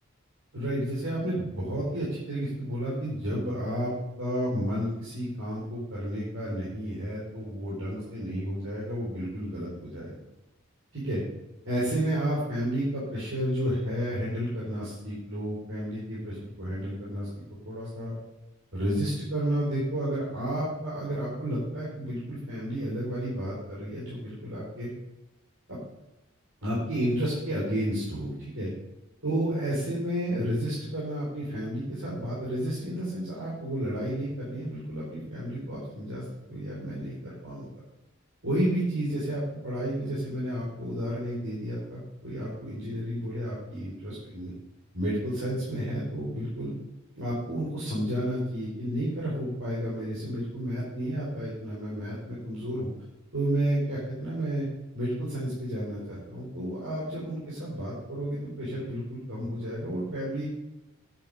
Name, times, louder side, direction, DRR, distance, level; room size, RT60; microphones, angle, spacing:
voice 1, 0.5-3.9 4.2-10.2 10.9-11.2 11.6-17.3 17.6-18.1 18.7-24.9 25.7-25.8 26.6-28.7 29.2-36.2 36.5-37.7 38.4-44.5 44.9-46.7 47.1-52.9 53.3-54.7 54.9-60.5, equal, 75° right, -7 dB, 4.1 m, -31 dB
10.5 x 7.8 x 5.3 m, 0.97 s
head